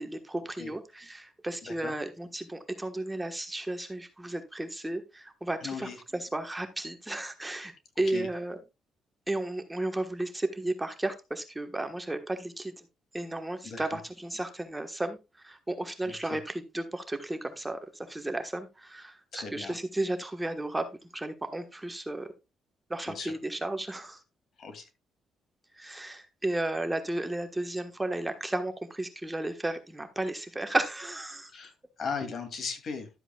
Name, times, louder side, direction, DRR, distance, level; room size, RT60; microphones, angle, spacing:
voice 1, 0.0-8.6 9.3-12.9 13.1-20.9 21.1-22.3 22.9-24.2 25.7-31.5, right 1 dB, 10° right, 7 dB, 1.4 m, -34 dB
voice 2, 1.6-1.9 5.6-6.0 8.0-8.3 13.6-14.0 16.0-16.4 19.3-19.8 23.1-23.3 24.6-24.9 31.5-33.1, left 5 dB, 55° left, 7 dB, 2.6 m, -38 dB
12.0 x 8.0 x 2.4 m, 0.25 s
cardioid pair, 90°, 0 cm